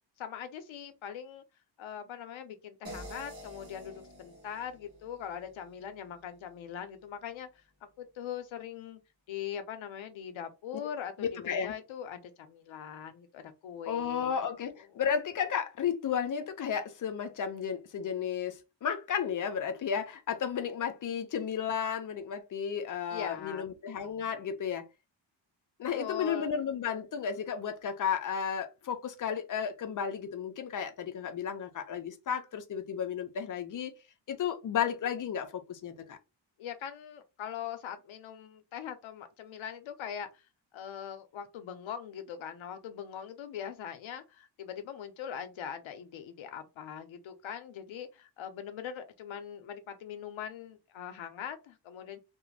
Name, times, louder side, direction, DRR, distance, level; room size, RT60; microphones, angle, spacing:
voice 1, 0.2-1.4 1.8-7.6 8.0-9.0 9.3-14.3 14.8-15.0 23.1-23.7 25.9-26.5 36.6-52.2, left 8 dB, 90° left, 0.6 m, -41 dB
sound 1, 2.8-5.9, equal, 40° right, 1.0 m, -48 dB
voice 2, 11.2-11.7 13.9-24.8 25.8-33.9 34.3-36.2, left 7 dB, 45° left, 0.4 m, -33 dB
2.4 x 2.1 x 3.1 m
wide cardioid pair, 180°, 46 cm